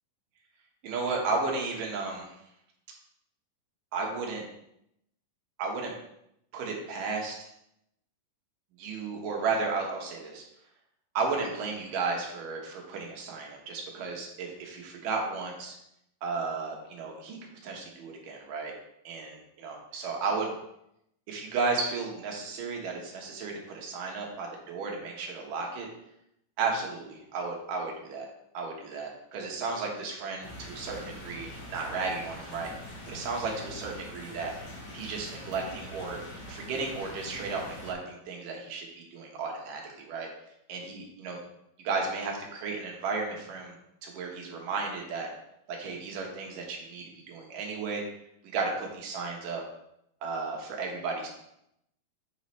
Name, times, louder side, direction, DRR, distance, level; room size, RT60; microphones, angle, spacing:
voice 1, 0.8-2.3 3.9-4.4 5.6-5.9 6.5-7.4 8.8-10.4 11.1-15.7 16.2-17.4 17.6-18.7 19.0-20.5 21.3-25.9 26.6-28.3 28.5-32.7 33.1-34.5 34.9-36.2 36.5-40.3 40.7-41.4 41.8-43.7 44.0-45.3 45.7-48.0 48.5-49.6 50.2-51.3, right 4 dB, 70° right, 0 dB, 2.7 m, -34 dB
sound 1, 30.4-37.9, left 1 dB, 50° left, 2.4 m, -44 dB
8.0 x 5.6 x 3.2 m, 0.79 s
omnidirectional pair, 4.1 m